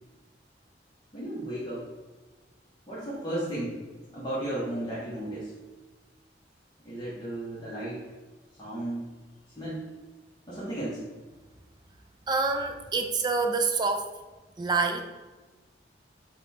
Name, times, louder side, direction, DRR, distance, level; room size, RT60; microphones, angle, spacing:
voice 1, 1.1-1.8 2.9-3.7 4.1-5.5 6.8-8.0 8.6-9.1 9.6-9.8 10.5-11.0, right 1 dB, 20° left, -9 dB, 0.9 m, -34 dB
voice 2, 12.3-14.1 14.6-15.1, right 4 dB, 25° right, 5 dB, 0.3 m, -27 dB
5.0 x 2.3 x 4.2 m, 1.3 s
head